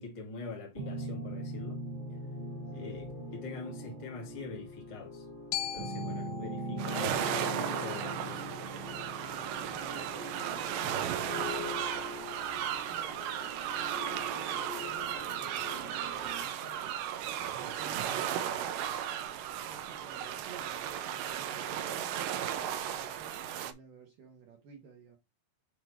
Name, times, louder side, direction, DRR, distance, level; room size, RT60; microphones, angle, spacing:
voice 1, 0.0-1.8 2.7-5.3 5.6-8.6, left 4 dB, 45° left, 0.4 m, -43 dB
sound 1, 0.8-16.4, equal, 15° right, 1.0 m, -42 dB
voice 2, 2.6-3.1 9.7-10.1 10.4-11.3 11.6-13.3 13.6-17.0 17.6-18.5 19.6-25.2, right 5 dB, 65° right, 2.3 m, -53 dB
Glockenspiel, 5.5-9.6, left 8 dB, 85° left, 1.7 m, -42 dB
sound 2, 6.8-23.7, right 10 dB, 80° right, 2.8 m, -35 dB
8.3 x 2.8 x 4.5 m
omnidirectional pair, 5.3 m